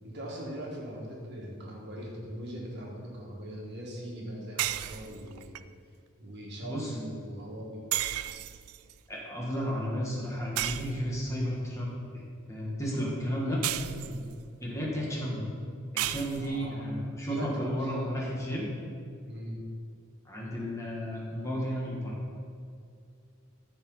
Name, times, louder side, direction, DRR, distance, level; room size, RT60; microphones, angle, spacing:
voice 1, 0.0-5.6 6.2-7.8 13.9-14.2 16.4-17.0 17.3-17.9 19.3-19.6, equal, 55° right, -3 dB, 1.7 m, -41 dB
sound 1, 4.6-5.6 7.9-8.9 10.6-11.4 13.6-14.5 16.0-16.7, right 13 dB, 85° right, 0.3 m, -34 dB
voice 2, 9.1-12.2 12.5-13.6 14.6-15.5 15.9-18.7 20.2-22.2, equal, 15° left, -4 dB, 1.6 m, -33 dB
14.0 x 4.9 x 4.0 m, 2.3 s
head